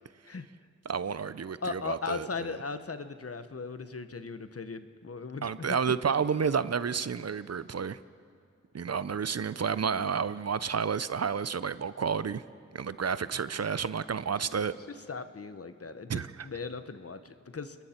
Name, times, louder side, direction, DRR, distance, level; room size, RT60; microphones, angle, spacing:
voice 1, 0.9-2.3 5.4-8.0 8.7-12.4 12.7-14.7 16.1-16.5, right 6 dB, 60° right, 15 dB, 0.6 m, -30 dB
voice 2, 1.6-5.8 14.5-14.8 15.1-17.8, left 4 dB, 50° left, 10 dB, 1.0 m, -38 dB
29.5 x 20.5 x 4.4 m, 2.3 s
wide cardioid pair, 55°, 29 cm